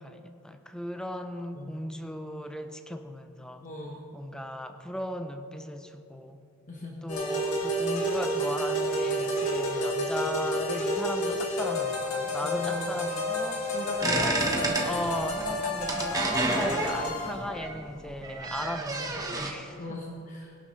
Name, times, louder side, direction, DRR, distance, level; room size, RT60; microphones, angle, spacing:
voice 1, 0.0-3.6 4.1-6.4 7.0-13.8 14.0-19.8, equal, 5° left, 7 dB, 0.5 m, -37 dB
voice 2, 3.6-4.0 6.7-7.0 12.4-12.9 13.7-14.6 19.8-20.5, left 1 dB, 35° left, -1 dB, 1.2 m, -39 dB
sound 1, 7.1-17.4, equal, 90° left, 2.6 m, -30 dB
sound 2, 14.0-19.5, right 2 dB, 15° right, 1.2 m, -30 dB
20.5 x 12.0 x 3.2 m, 2.6 s
head